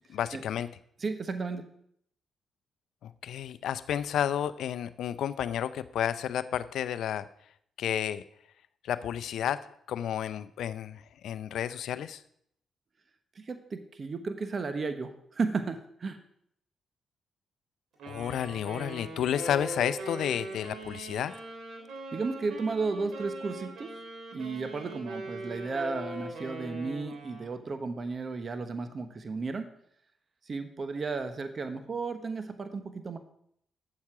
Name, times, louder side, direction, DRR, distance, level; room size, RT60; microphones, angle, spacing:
voice 1, 0.1-0.7 3.0-7.2 7.8-8.2 8.8-12.2 18.1-21.3, left 10 dB, 75° left, 13 dB, 0.5 m, -31 dB
voice 2, 1.0-1.7 13.3-16.2 22.1-24.0 24.3-29.7 30.5-33.2, right 4 dB, 45° right, 8 dB, 1.0 m, -34 dB
Wind instrument woodwind instrument, 18.0-27.6, right 1 dB, 70° right, 3.3 m, -41 dB
9.5 x 7.3 x 4.9 m, 0.69 s
supercardioid pair, 55°, 0 cm